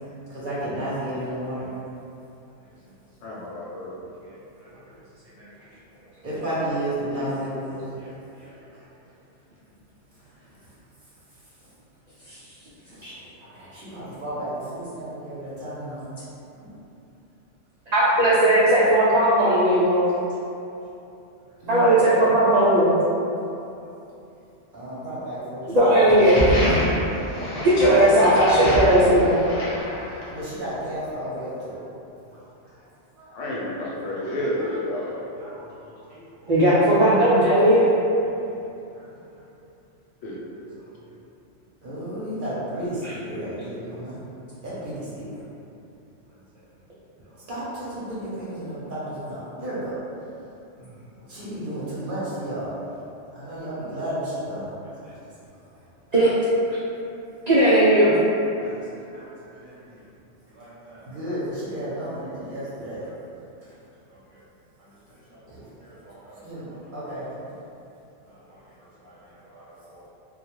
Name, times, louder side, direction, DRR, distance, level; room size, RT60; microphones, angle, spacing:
voice 1, 0.3-1.7 2.8-2.9 4.2-4.9 5.2-9.1 10.1-10.6 12.8-16.1 16.6-16.7 21.6-21.9 23.5-23.9 24.7-25.7 26.0-26.1 26.8-27.1 30.1-31.8 34.2-34.7 35.4-35.5 36.4-36.5 38.4-38.7 38.9-39.1 39.3-39.4 40.8-41.1 41.8-44.2 44.6-45.4 46.3-46.4 47.2-49.9 50.8-52.7 53.3-55.2 55.7-55.8 58.6-60.0 60.4-63.1 63.7-63.8 64.1-64.4 64.8-67.3 68.2-70.1, right 1 dB, 50° right, -10 dB, 0.7 m, -34 dB
voice 2, 3.2-3.9 33.4-35.1 40.2-40.4, left 1 dB, 80° left, -5 dB, 0.9 m, -30 dB
voice 3, 17.9-20.1 21.7-23.0 25.7-26.4 27.6-29.4 36.5-37.9 56.1-56.3 56.7-56.8 57.5-58.1, right 1 dB, 85° right, -10 dB, 0.3 m, -17 dB
sound 1, 26.1-30.4, left 1 dB, 40° left, 0.5 m, -27 dB
2.2 x 2.2 x 2.9 m, 2.8 s
omnidirectional pair, 1.3 m